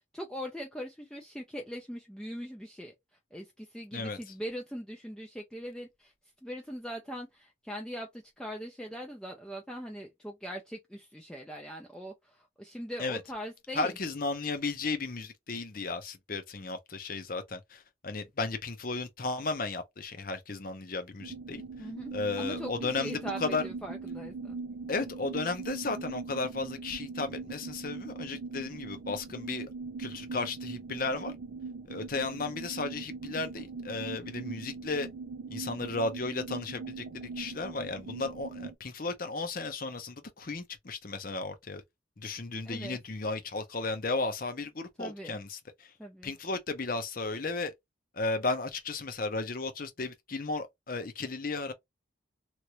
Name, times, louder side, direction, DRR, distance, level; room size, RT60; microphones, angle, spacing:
voice 1, 0.0-2.9 3.3-6.1 6.4-13.9 21.8-24.6 42.7-43.0 45.0-45.4 46.0-46.3, equal, 5° left, 0.5 m, -41 dB
voice 2, 13.8-23.6 24.9-29.7 30.0-31.3 31.9-35.1 35.5-37.0 37.4-41.8 42.2-45.9 46.2-47.7 48.1-51.7, left 3 dB, 45° left, 0.7 m, -34 dB
sound 1, 21.2-38.8, right 4 dB, 70° right, 0.4 m, -41 dB
3.1 x 2.5 x 2.9 m
head